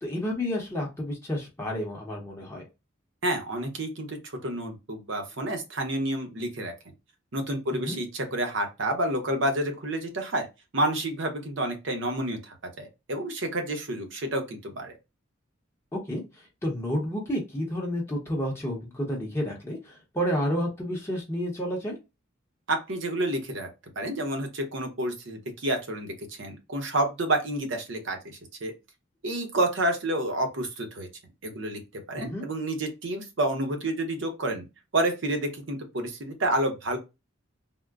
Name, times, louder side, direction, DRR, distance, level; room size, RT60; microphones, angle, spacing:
voice 1, 0.0-2.6 7.7-8.0 15.9-22.0 32.1-32.5, equal, 15° left, -2 dB, 0.7 m, -30 dB
voice 2, 3.2-6.7 7.3-10.5 10.7-15.0 22.7-23.7 24.0-28.7 29.2-31.1 31.4-31.8 32.1-34.6 34.9-37.0, right 1 dB, 65° right, 4 dB, 0.8 m, -29 dB
3.6 x 2.1 x 2.3 m, 0.25 s
head